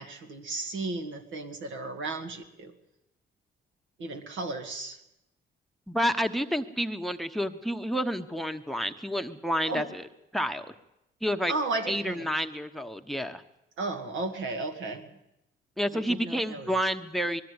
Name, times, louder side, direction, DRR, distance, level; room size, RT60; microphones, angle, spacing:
voice 1, 0.0-2.7 4.0-5.0 9.7-9.9 11.5-12.3 13.8-15.1 15.9-16.8, right 3 dB, 75° right, 6 dB, 2.2 m, -34 dB
voice 2, 5.9-10.0 10.3-10.7 11.2-11.5 11.9-13.4 15.8-17.4, equal, ahead, 10 dB, 1.0 m, -29 dB
20.5 x 13.5 x 9.6 m, 0.89 s
cardioid pair, 90°, 20 cm